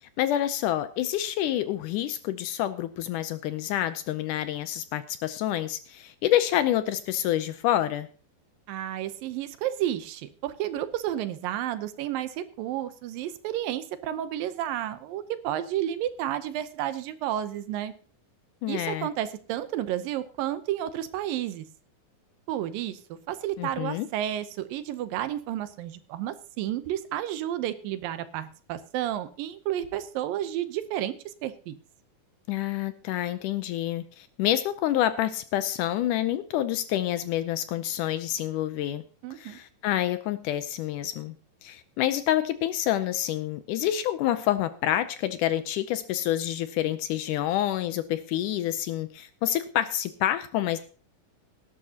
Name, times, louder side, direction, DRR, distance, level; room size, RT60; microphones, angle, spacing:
voice 1, 0.2-8.1 18.6-19.1 23.6-24.1 32.5-39.0 39.3-41.4 41.6-50.8, left 12 dB, 75° left, 12 dB, 2.0 m, -28 dB
voice 2, 8.7-17.9 18.7-21.7 22.5-31.8 39.2-39.6, right 12 dB, 80° right, 11 dB, 2.5 m, -31 dB
17.5 x 11.0 x 2.8 m, 0.39 s
omnidirectional pair, 4.0 m